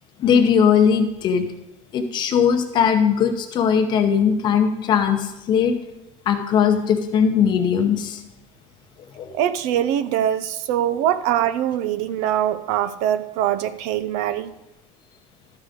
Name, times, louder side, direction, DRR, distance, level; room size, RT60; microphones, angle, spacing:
voice 1, 0.2-1.5 1.9-5.7 6.3-8.2 9.2-9.3, left 7 dB, 25° left, 6 dB, 0.8 m, -19 dB
voice 2, 9.3-14.5, right 11 dB, 45° right, 14 dB, 0.4 m, -23 dB
13.0 x 4.8 x 5.0 m, 0.95 s
cardioid pair, 180°, 17 cm